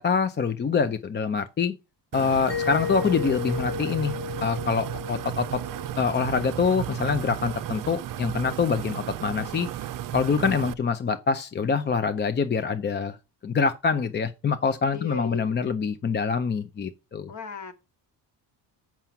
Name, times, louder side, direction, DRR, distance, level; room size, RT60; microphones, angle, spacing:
voice 1, 0.0-1.7 2.1-4.1 4.4-5.6 6.0-9.7 10.1-13.2 13.4-17.3, left 5 dB, 25° left, 0.5 m, -25 dB
sound 1, 2.1-10.7, right 12 dB, 50° right, 0.6 m, -34 dB
Mallet percussion, 2.5-7.1, left 8 dB, 85° left, 2.9 m, -35 dB
voice 2, 14.9-15.5 17.3-17.7, left 3 dB, 40° left, 1.5 m, -37 dB
7.4 x 5.9 x 5.6 m
cardioid pair, 155°, 43 cm